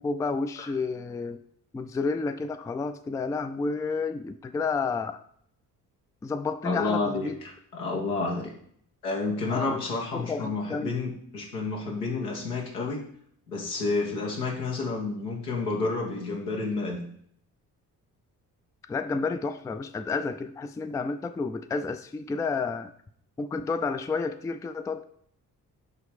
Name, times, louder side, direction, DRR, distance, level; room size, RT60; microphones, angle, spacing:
voice 1, 0.0-1.4 1.7-5.2 6.2-7.4 9.5-9.8 10.1-10.9 18.9-22.9 23.4-25.0, left 4 dB, 10° left, 10 dB, 0.3 m, -30 dB
voice 2, 6.6-8.5 9.0-13.0 13.5-17.0, left 3 dB, 85° left, -1 dB, 1.2 m, -30 dB
8.2 x 3.2 x 5.1 m, 0.65 s
figure-of-eight pair, 40°, 46 cm